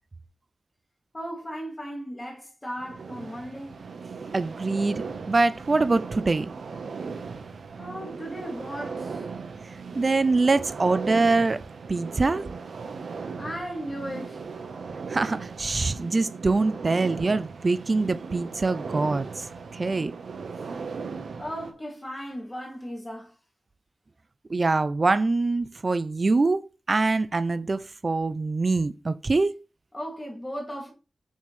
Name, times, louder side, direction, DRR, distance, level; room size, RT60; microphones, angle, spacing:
voice 1, 1.1-3.8 7.8-9.2 13.4-14.4 21.4-23.3 29.9-30.9, equal, 20° left, 2.5 m, -36 dB
sound 1, 2.8-21.7, right 5 dB, 85° right, 1.1 m, -37 dB
voice 2, 4.3-6.5 10.0-11.6 11.9-12.4 15.1-19.4 19.7-20.1 24.5-29.5, right 3 dB, 40° right, 0.5 m, -24 dB
6.9 x 6.3 x 3.3 m
wide cardioid pair, 85°, 0 cm